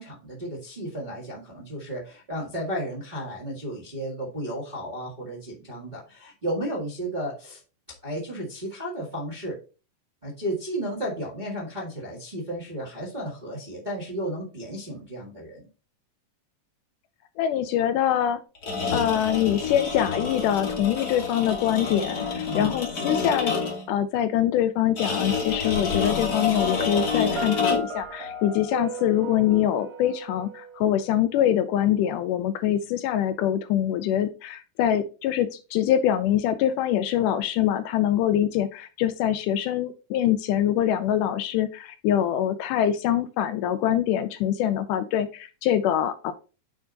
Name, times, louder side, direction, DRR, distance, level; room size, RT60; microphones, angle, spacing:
voice 1, 0.0-7.6 8.0-9.6 10.2-15.7 18.8-19.1 22.5-22.7, right 1 dB, 20° right, -4 dB, 1.2 m, -33 dB
voice 2, 17.4-18.4 18.9-23.6 23.9-46.3, left 11 dB, 80° left, 11 dB, 2.0 m, -24 dB
sound 1, 18.5-23.9 25.0-28.0, left 5 dB, 45° left, 1.3 m, -28 dB
Piano, 26.6-31.5, right 4 dB, 60° right, 1.4 m, -37 dB
8.5 x 3.6 x 3.9 m, 0.34 s
omnidirectional pair, 3.9 m